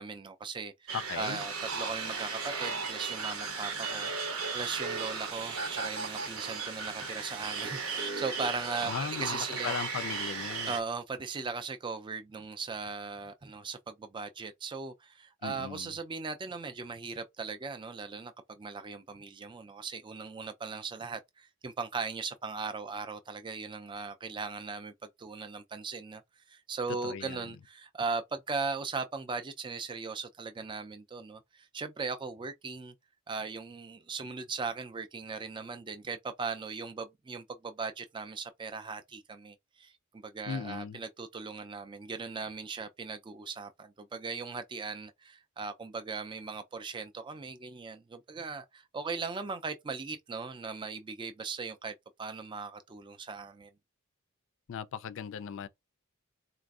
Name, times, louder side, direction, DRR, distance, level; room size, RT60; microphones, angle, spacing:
voice 1, 0.0-4.1 4.5-9.7 10.7-24.9 25.2-26.2 26.5-32.9 33.3-53.7, right 4 dB, 20° right, 0.3 m, -38 dB
voice 2, 0.9-1.4 8.9-10.7 15.4-15.9 27.0-27.5 40.5-41.0 54.7-55.7, left 7 dB, 60° left, 0.3 m, -38 dB
sound 1, 0.9-10.8, right 4 dB, 75° right, 1.0 m, -36 dB
4.0 x 2.5 x 2.3 m
head